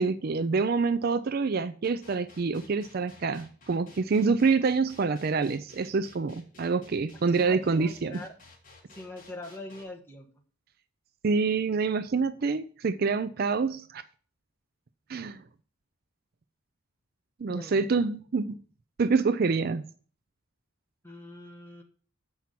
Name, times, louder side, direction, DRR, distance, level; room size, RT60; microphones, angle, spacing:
voice 1, 0.0-8.2 11.2-14.0 15.1-15.4 17.4-18.6 19.0-19.9, right 4 dB, 45° right, 0.4 m, -26 dB
sound 1, 1.8-9.8, left 2 dB, 40° left, 2.2 m, -54 dB
voice 2, 7.2-8.3 8.9-10.3 17.5-17.9 21.0-21.8, left 2 dB, 10° left, 1.2 m, -43 dB
7.1 x 5.9 x 7.5 m
head